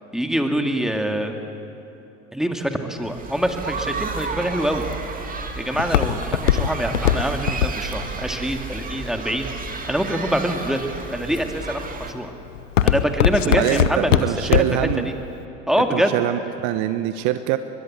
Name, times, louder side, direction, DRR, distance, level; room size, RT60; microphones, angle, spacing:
voice 1, 0.1-1.3 2.3-4.8 5.6-9.5 9.9-12.3 12.8-14.3 14.7-15.1 15.7-16.1, equal, ahead, 4 dB, 2.4 m, -25 dB
sound 1, 3.0-12.1, right 4 dB, 20° right, 2.4 m, -32 dB
Walk footsteps, 4.7-9.8 10.4-10.8 11.4-11.7 12.1-14.9 15.3-15.4, left 10 dB, 80° left, 1.1 m, -20 dB
voice 2, 13.4-15.1 15.9-17.6, right 13 dB, 50° right, 11 dB, 1.0 m, -24 dB
22.5 x 21.5 x 8.8 m, 2.9 s
hypercardioid pair, 80°, 38 cm